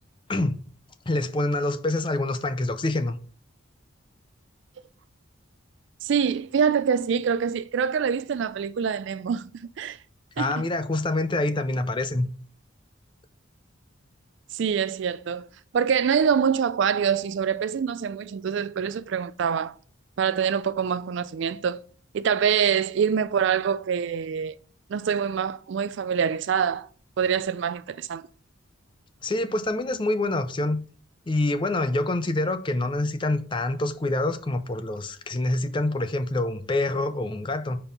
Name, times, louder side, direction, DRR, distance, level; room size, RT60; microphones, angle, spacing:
voice 1, 1.1-3.2 10.4-12.3 29.2-30.8 31.3-37.8, left 2 dB, 25° left, 0.4 m, -26 dB
voice 2, 6.0-9.5 9.8-10.0 10.4-10.7 14.5-15.5 15.7-19.8 20.2-21.8 22.1-24.6 24.9-26.9 27.2-28.3, right 7 dB, 55° right, 0.3 m, -25 dB
5.3 x 4.5 x 5.2 m
head